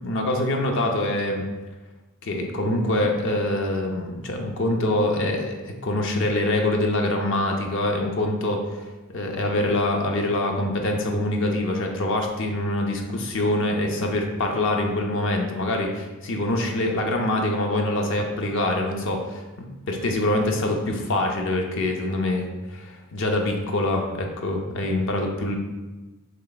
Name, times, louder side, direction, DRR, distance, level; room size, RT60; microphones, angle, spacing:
voice 1, 0.0-1.4 2.2-8.8 9.1-25.6, left 1 dB, 60° left, 2 dB, 0.6 m, -25 dB
3.3 x 3.2 x 4.0 m, 1.2 s
head